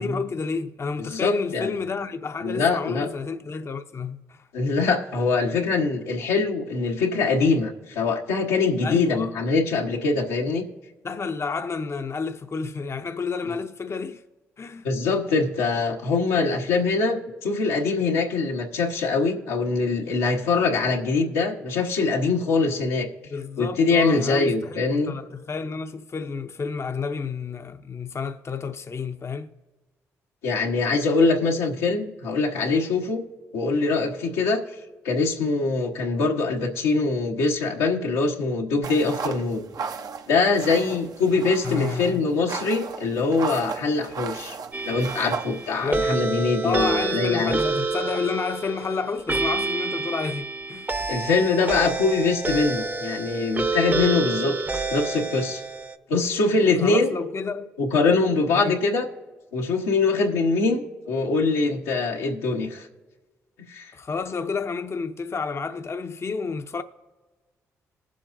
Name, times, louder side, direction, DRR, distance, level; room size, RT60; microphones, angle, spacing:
voice 1, 0.0-4.4 8.8-9.3 11.0-14.2 14.6-14.9 23.3-29.5 41.6-42.2 45.8-46.1 46.6-50.9 56.8-57.7 58.5-58.8 63.9-66.8, left 5 dB, 40° left, 0.6 m, -30 dB
voice 2, 1.1-1.7 2.4-3.1 4.5-10.6 14.8-23.1 23.6-25.1 30.4-33.2 33.5-34.6 35.0-39.7 40.3-44.6 44.8-47.6 51.1-55.6 56.1-57.1 57.8-59.1 59.5-62.9 63.7-63.9, left 3 dB, 90° left, 1.2 m, -23 dB
sound 1, 38.8-46.0, right 5 dB, 60° right, 0.7 m, -35 dB
sound 2, 44.7-56.0, right 3 dB, 25° right, 0.7 m, -28 dB
20.0 x 7.5 x 2.6 m
hypercardioid pair, 45°, 7 cm